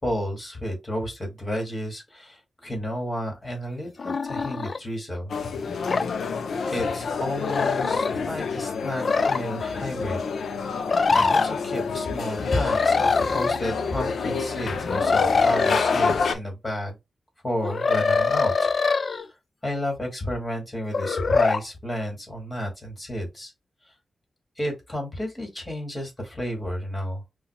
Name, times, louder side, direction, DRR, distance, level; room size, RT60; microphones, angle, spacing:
voice 1, 0.0-5.3 6.7-10.2 10.6-10.9 11.1-17.0 17.4-19.3 19.6-23.5 23.8-23.9 24.6-27.2, equal, 20° left, 2.1 m, -32 dB
sound 1, 4.0-4.8 5.9-6.1 7.4-8.1 8.9-9.4 10.9-11.5 12.6-13.6 14.9-15.9 17.6-19.2 20.9-21.6, left 4 dB, 50° left, 0.3 m, -23 dB
sound 2, 5.3-16.3, left 5 dB, 90° left, 0.6 m, -28 dB
5.6 x 2.6 x 2.2 m
wide cardioid pair, 120°, 0 cm